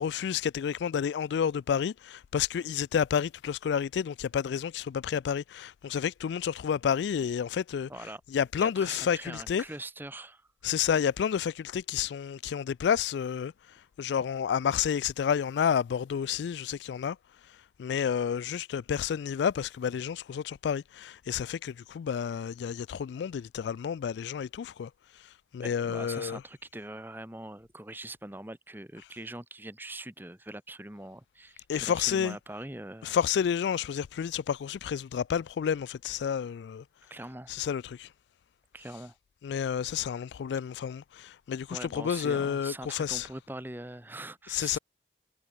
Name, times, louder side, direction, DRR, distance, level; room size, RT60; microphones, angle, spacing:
voice 1, 0.0-9.7 10.6-13.5 14.0-17.2 17.8-24.9 25.5-26.4 31.7-32.4 33.0-36.8 37.5-38.1 39.4-43.3 44.5-44.8, left 8 dB, 75° left, 0.3 m, -30 dB
voice 2, 7.9-8.2 8.6-10.5 25.6-33.1 37.1-37.5 38.7-39.1 41.7-44.8, right 1 dB, 10° right, 1.5 m, -42 dB
head